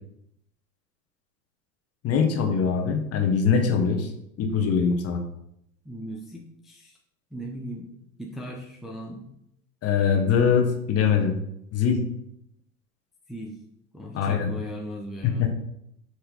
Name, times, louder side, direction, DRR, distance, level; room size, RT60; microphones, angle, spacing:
voice 1, 2.0-4.1 4.4-5.2 9.8-11.4 11.7-12.0 14.1-14.5 15.2-15.5, left 6 dB, 35° left, 3 dB, 1.2 m, -22 dB
voice 2, 5.8-7.0 7.3-7.9 8.2-9.3 13.3-13.6 13.9-15.5, equal, ahead, -2 dB, 0.7 m, -38 dB
7.8 x 3.1 x 3.8 m, 0.77 s
figure-of-eight pair, 85°, 45 cm